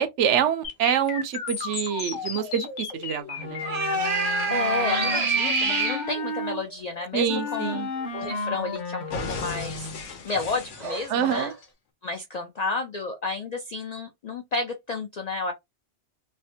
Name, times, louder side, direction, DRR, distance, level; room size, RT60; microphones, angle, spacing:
voice 1, 0.0-3.6 7.1-7.9 11.1-11.5, right 8 dB, 75° right, 0.9 m, -26 dB
sound 1, 0.6-8.6 9.1-11.7, left 5 dB, 80° left, 1.1 m, -37 dB
sound 2, 2.4-2.5 3.6-6.0 10.3-10.4 10.8-11.5, right 3 dB, 40° right, 0.6 m, -26 dB
Wind instrument woodwind instrument, 3.4-6.6 7.3-10.0, left 2 dB, 45° left, 0.8 m, -33 dB
voice 2, 4.5-7.8 8.1-9.9 10.2-11.5 12.0-15.5, left 3 dB, 65° left, 0.4 m, -31 dB
3.2 x 2.1 x 2.6 m
omnidirectional pair, 1.2 m